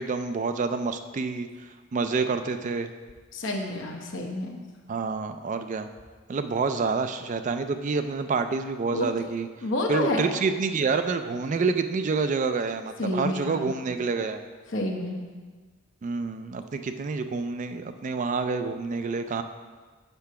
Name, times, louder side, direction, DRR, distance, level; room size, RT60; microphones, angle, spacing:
voice 1, 0.0-2.9 4.9-5.9 6.3-9.5 9.9-14.4 16.0-19.4, right 4 dB, 35° right, 9 dB, 0.3 m, -28 dB
voice 2, 3.3-4.6 8.9-9.1 9.6-10.2 13.0-13.7 14.7-15.2, left 1 dB, 60° left, 1 dB, 1.0 m, -29 dB
6.8 x 4.6 x 5.7 m, 1.4 s
head